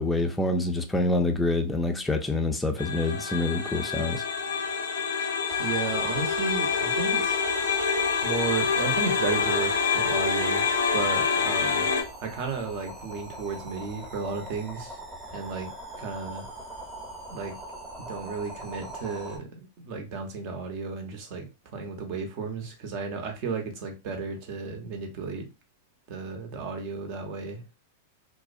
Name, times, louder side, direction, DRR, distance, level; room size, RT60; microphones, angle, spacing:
voice 1, 0.0-4.2, left 2 dB, 10° left, 0.4 m, -26 dB
sound 1, 2.8-12.0, left 5 dB, 85° left, 0.6 m, -26 dB
sound 2, 5.5-19.4, right 1 dB, 15° right, 0.9 m, -42 dB
voice 2, 5.6-7.4 8.2-10.7 10.9-11.9 12.2-15.0 15.3-15.7 16.0-16.5 17.3-17.5 18.0-21.5 21.7-25.4 26.1-27.7, right 4 dB, 50° right, 0.8 m, -33 dB
2.4 x 2.0 x 2.5 m
hypercardioid pair, 115°, 0 cm